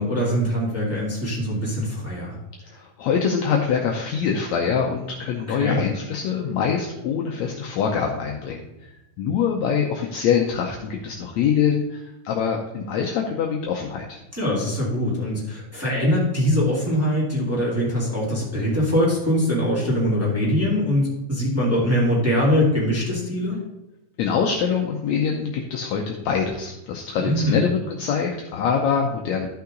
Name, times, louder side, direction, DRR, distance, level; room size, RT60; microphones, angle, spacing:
voice 1, 0.0-2.3 5.5-5.8 14.3-23.6 27.2-27.6, equal, 5° right, -6 dB, 2.5 m, -22 dB
voice 2, 2.7-8.9 9.2-14.2 24.2-29.5, left 6 dB, 75° left, 1 dB, 1.8 m, -24 dB
12.5 x 5.7 x 3.9 m, 0.91 s
omnidirectional pair, 3.8 m